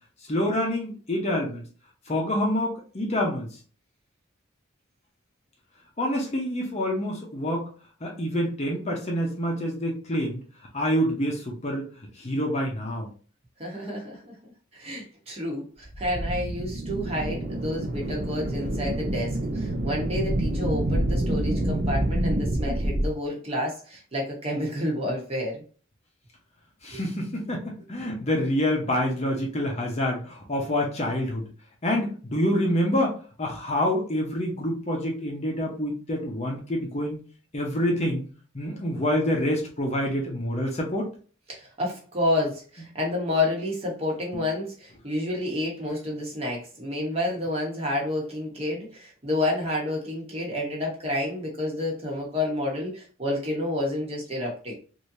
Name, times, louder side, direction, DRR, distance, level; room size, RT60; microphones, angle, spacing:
voice 1, 0.3-1.6 2.1-3.5 6.0-7.7 8.0-10.4 10.7-11.9 12.2-13.1 26.8-31.5 31.8-37.2 37.5-38.2 38.5-41.1 44.3-44.4, equal, 30° left, -1 dB, 0.7 m, -27 dB
voice 2, 13.6-25.6 26.9-27.0 41.5-54.7, left 1 dB, 30° right, -2 dB, 1.0 m, -29 dB
sound 1, 15.8-23.1, right 1 dB, 45° right, 0.6 m, -27 dB
3.3 x 2.7 x 2.7 m, 0.39 s
head